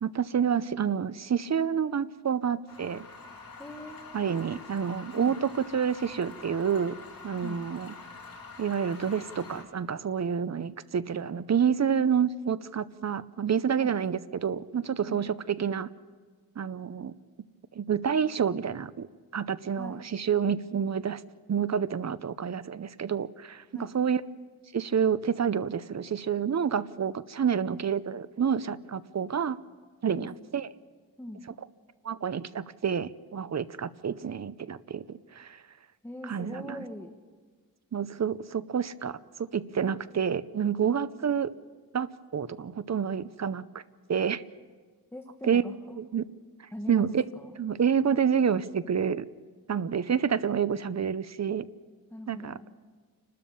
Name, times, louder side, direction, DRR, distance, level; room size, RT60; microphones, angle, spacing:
voice 1, 0.0-3.0 4.1-6.9 7.2-7.9 8.6-15.9 16.6-17.1 17.8-19.1 19.3-21.2 21.5-24.2 24.7-29.6 30.0-30.7 32.0-35.6 36.3-36.8 37.9-41.5 41.9-43.8 44.1-44.4 45.4-45.6 46.0-46.2 46.9-47.2 47.6-49.2 49.7-51.6 52.3-52.5, right 7 dB, 50° right, 15 dB, 0.7 m, -28 dB
sound 1, 2.7-9.6, left 4 dB, 70° left, 3.2 m, -46 dB
voice 2, 3.6-4.4 5.1-5.4 7.4-7.6 13.8-14.1 15.1-15.3 19.8-20.0 23.7-23.9 30.1-30.3 31.2-31.4 36.0-37.2 45.1-45.7 46.7-47.6 52.1-52.7, left 1 dB, 5° left, 3 dB, 1.2 m, -41 dB
30.0 x 13.0 x 7.1 m, 1.5 s
wide cardioid pair, 105°, 36 cm